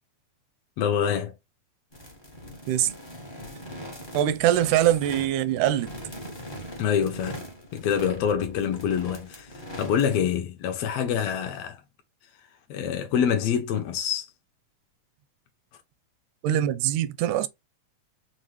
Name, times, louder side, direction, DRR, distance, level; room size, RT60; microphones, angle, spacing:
voice 1, 0.8-1.3 6.8-7.4 7.7-11.8 12.7-14.3, left 8 dB, 75° left, 1.5 m, -26 dB
sound 1, 1.9-10.2, equal, 30° left, 0.4 m, -41 dB
voice 2, 4.1-5.9 16.4-17.5, right 12 dB, 85° right, 2.0 m, -23 dB
5.4 x 2.5 x 3.0 m
omnidirectional pair, 3.4 m